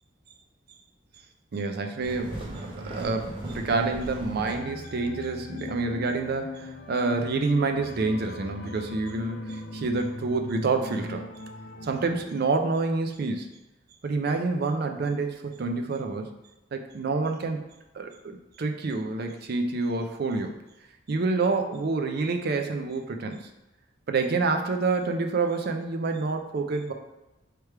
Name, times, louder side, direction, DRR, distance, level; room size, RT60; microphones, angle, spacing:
voice 1, 1.5-11.2 11.8-13.5 14.0-16.4 16.7-17.6 17.9-20.5 21.1-23.5 24.1-26.9, right 3 dB, 55° right, 5 dB, 0.4 m, -28 dB
sound 1, 2.0-4.5, right 1 dB, 25° right, 0.9 m, -38 dB
sound 2, 4.4-12.2, left 2 dB, 55° left, 0.5 m, -40 dB
3.3 x 3.2 x 4.5 m, 1.0 s
head